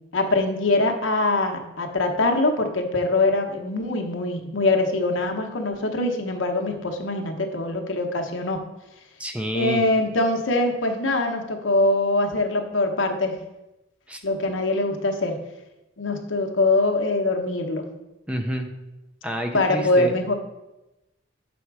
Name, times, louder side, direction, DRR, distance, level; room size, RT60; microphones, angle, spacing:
voice 1, 0.1-8.6 9.5-13.4 14.2-15.4 16.0-17.9 19.5-20.3, left 2 dB, 80° left, 3 dB, 0.9 m, -23 dB
voice 2, 9.2-9.8 14.1-14.2 18.3-18.7 19.2-20.1, equal, 5° right, 4 dB, 0.5 m, -28 dB
7.0 x 4.2 x 4.7 m, 0.99 s
head